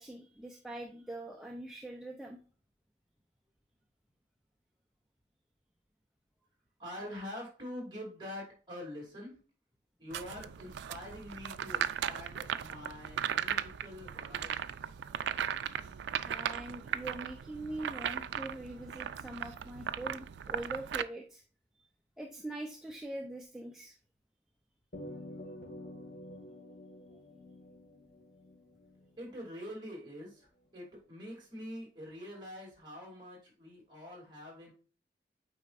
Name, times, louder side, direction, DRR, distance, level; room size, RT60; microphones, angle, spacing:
voice 1, 0.0-2.4 16.2-21.4 22.2-23.9, right 1 dB, 5° right, 1 dB, 0.5 m, -43 dB
voice 2, 6.8-9.4 10.0-14.7 29.2-34.7, left 1 dB, 25° right, -2 dB, 2.7 m, -45 dB
sound 1, 10.1-21.0, right 9 dB, 80° right, 0.3 m, -37 dB
sound 2, 24.9-29.5, left 1 dB, 55° left, 2.0 m, -48 dB
8.4 x 4.5 x 2.5 m, 0.38 s
head